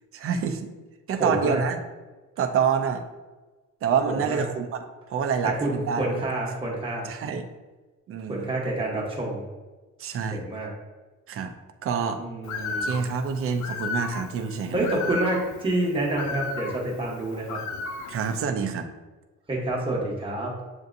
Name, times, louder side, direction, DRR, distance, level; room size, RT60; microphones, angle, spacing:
voice 1, 0.1-0.7 1.1-1.8 2.4-3.0 3.8-6.2 7.0-7.4 8.1-8.5 10.0-10.4 11.3-11.5 11.8-12.2 12.8-14.9 18.1-18.9, right 6 dB, 45° right, 6 dB, 0.5 m, -27 dB
voice 2, 1.2-1.6 4.1-4.4 5.4-7.1 8.3-9.4 10.3-10.7 12.2-12.9 14.7-17.6 19.5-20.5, right 1 dB, 15° right, -3 dB, 0.9 m, -28 dB
Bird, 12.4-18.4, left 4 dB, 65° left, 0.5 m, -34 dB
7.9 x 2.6 x 2.5 m, 1.2 s
cardioid pair, 175°, 31 cm